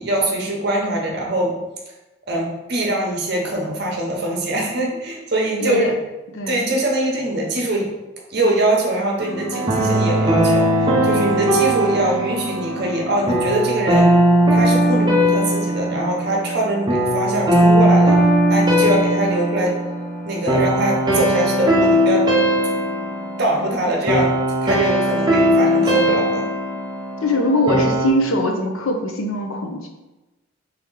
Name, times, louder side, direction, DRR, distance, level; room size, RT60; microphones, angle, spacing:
voice 1, 0.0-1.6 2.3-6.0 6.5-7.9 8.3-14.1 14.5-18.2 18.5-19.8 20.2-22.3 23.4-24.4 24.6-26.5, right 1 dB, 50° right, -1 dB, 0.8 m, -22 dB
voice 2, 5.6-5.9 6.3-6.6 27.2-29.9, left 1 dB, 80° left, 2 dB, 0.6 m, -21 dB
sound 1, 9.2-28.1, right 1 dB, 20° right, 0.6 m, -19 dB
Wind instrument woodwind instrument, 9.5-12.9, right 5 dB, 80° right, 0.3 m, -29 dB
3.4 x 2.9 x 3.8 m, 1.1 s
head